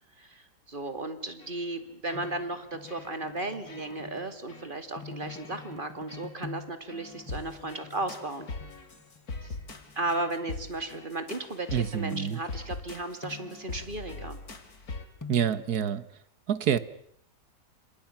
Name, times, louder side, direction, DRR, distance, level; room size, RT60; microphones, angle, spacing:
voice 1, 0.2-8.5 9.4-9.6 10.0-14.4, right 2 dB, 30° right, 8 dB, 2.6 m, -35 dB
sound 1, 1.4-1.8 2.1-2.6 2.9-3.3 3.7-4.2 4.5-4.7 5.3-5.8 6.1-6.3 6.9-15.0, left 3 dB, 60° left, 3.1 m, -42 dB
sound 2, 2.1-4.4 5.0-6.8 7.1-10.8 11.6-11.7 12.1-12.5 13.2-13.6 15.2-15.6, left 5 dB, 10° left, 1.2 m, -46 dB
voice 2, 11.7-12.4 15.3-16.1 16.5-16.8, right 8 dB, 65° right, 14 dB, 1.8 m, -27 dB
29.0 x 26.0 x 6.0 m, 0.66 s
omnidirectional pair, 1.8 m